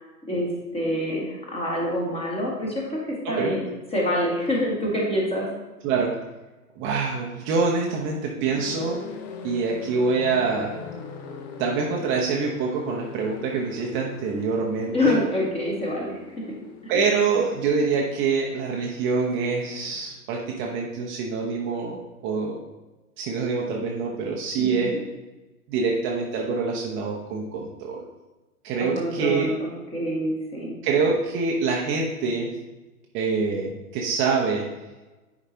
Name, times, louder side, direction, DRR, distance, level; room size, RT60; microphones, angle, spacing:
voice 1, 0.3-3.0 3.3-5.5 14.9-16.5 16.8-16.9 24.6-25.0 28.8-30.8, left 1 dB, 15° left, -3 dB, 1.7 m, -26 dB
voice 2, 6.8-9.0 9.4-10.8 11.6-15.2 16.9-22.6 23.2-24.9 25.7-28.0 28.6-29.5 30.8-32.5 33.1-34.7, right 4 dB, 25° right, -2 dB, 0.9 m, -25 dB
sound 1, 8.5-20.2, left 6 dB, 30° left, 0.6 m, -41 dB
9.7 x 5.0 x 2.8 m, 1.1 s
figure-of-eight pair, 110°, 46 cm